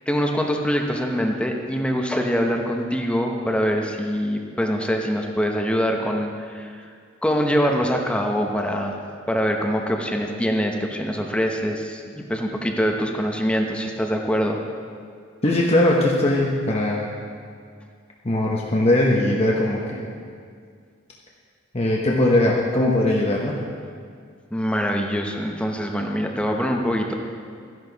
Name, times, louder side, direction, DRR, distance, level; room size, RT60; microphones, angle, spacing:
voice 1, 0.1-6.9 7.2-9.0 9.3-14.6 24.5-27.1, equal, 5° left, 2 dB, 0.8 m, -24 dB
voice 2, 15.4-17.1 18.2-20.0 21.7-23.5, left 1 dB, 30° left, -3 dB, 1.0 m, -20 dB
13.5 x 10.5 x 4.0 m, 2.1 s
head